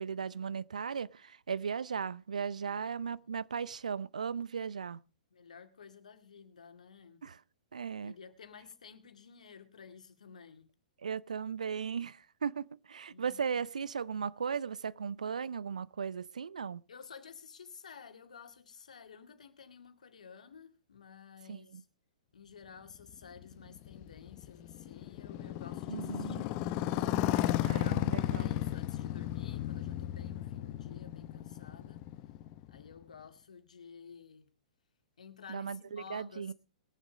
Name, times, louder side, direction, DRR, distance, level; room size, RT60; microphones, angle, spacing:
voice 1, 0.0-5.0 7.2-7.4 7.7-8.1 11.0-16.8 21.5-21.8 25.9-26.5 27.6-28.5 35.5-36.5, right 6 dB, 75° right, 0.6 m, -37 dB
voice 2, 2.6-3.3 5.3-7.2 8.0-10.7 13.1-13.6 16.9-21.9 22.3-26.7 27.3-32.1 32.7-34.5 35.2-36.5, left 6 dB, 70° left, 2.1 m, -53 dB
Motorcycle, 23.1-33.0, left 14 dB, 35° left, 0.9 m, -34 dB
21.0 x 7.3 x 5.0 m
figure-of-eight pair, 115°, 4 cm